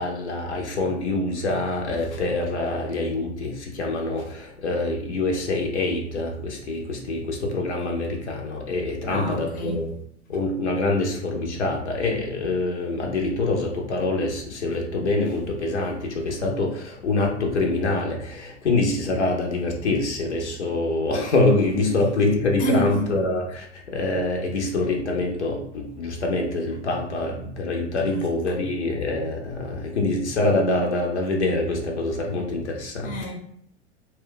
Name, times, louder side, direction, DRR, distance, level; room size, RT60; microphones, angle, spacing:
voice 1, 0.0-9.9 10.3-33.1, left 2 dB, 75° left, 0.7 m, -25 dB
voice 2, 9.1-9.8 22.6-23.0 28.0-28.3 33.0-33.3, right 1 dB, 25° left, 0.7 m, -28 dB
2.2 x 2.1 x 3.7 m
figure-of-eight pair, 90°, 35 cm